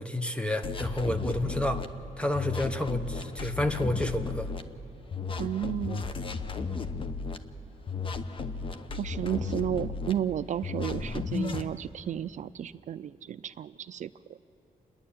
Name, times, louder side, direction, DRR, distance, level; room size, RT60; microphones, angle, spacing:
voice 1, 0.0-1.8 2.2-4.5, left 1 dB, 10° left, 8 dB, 0.9 m, -30 dB
sound 1, 0.6-1.9 2.3-4.6 5.1-7.4 7.9-10.1 10.6-11.7, left 4 dB, 40° left, 0.9 m, -34 dB
voice 2, 5.4-6.0 8.9-14.1, right 10 dB, 60° right, 13 dB, 0.4 m, -33 dB
28.5 x 11.0 x 8.6 m, 2.8 s
wide cardioid pair, 140°, 14 cm